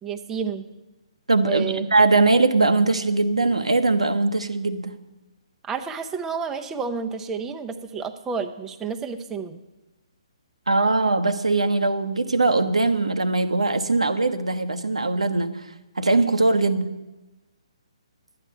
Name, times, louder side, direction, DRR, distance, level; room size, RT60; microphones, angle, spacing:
voice 1, 0.0-0.6 1.4-1.8 5.6-9.6, right 5 dB, 10° right, 5 dB, 0.6 m, -30 dB
voice 2, 1.3-4.9 10.7-15.6 16.0-16.9, right 3 dB, 85° right, 8 dB, 0.9 m, -21 dB
11.5 x 8.8 x 5.5 m, 1.1 s
figure-of-eight pair, 135°, 3 cm